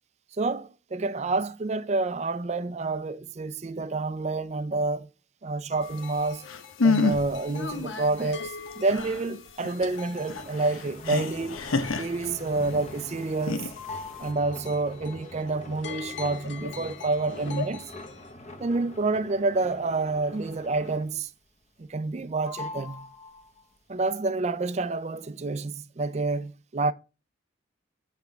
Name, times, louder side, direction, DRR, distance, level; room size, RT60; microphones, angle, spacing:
voice 1, 0.4-5.1 5.4-6.5 6.8-11.6 12.0-13.7 14.2-17.8 18.6-21.3 21.8-23.1 23.9-26.9, right 3 dB, 35° right, 0.4 m, -28 dB
sound 1, 5.7-13.1 13.9-18.3, left 4 dB, 60° left, 1.1 m, -41 dB
sound 2, 6.2-6.3 6.5-7.4 7.7-7.8 8.2-12.7 13.3-14.3, left 4 dB, 90° left, 0.9 m, -28 dB
sound 3, 9.8-21.3 21.6-22.2 22.4-23.8, left 3 dB, 35° left, 0.9 m, -44 dB
8.6 x 5.8 x 3.4 m
head